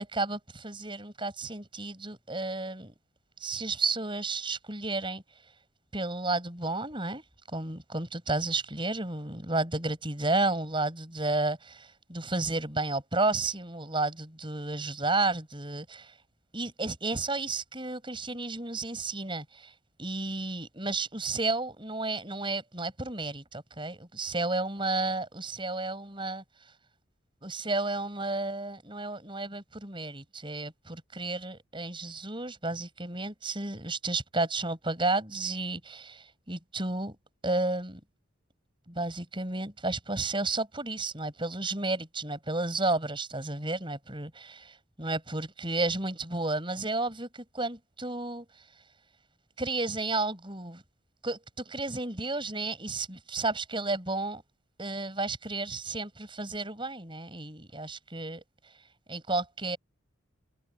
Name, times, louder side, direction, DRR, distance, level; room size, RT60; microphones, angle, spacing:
voice 1, 0.0-2.9 3.4-5.2 5.9-7.2 7.5-16.1 16.5-19.7 20.0-26.4 27.4-37.2 37.4-38.0 38.9-48.4 49.6-50.8 51.2-54.4 54.8-58.4 59.1-59.8, right 2 dB, 25° right, 7.7 m, -32 dB
head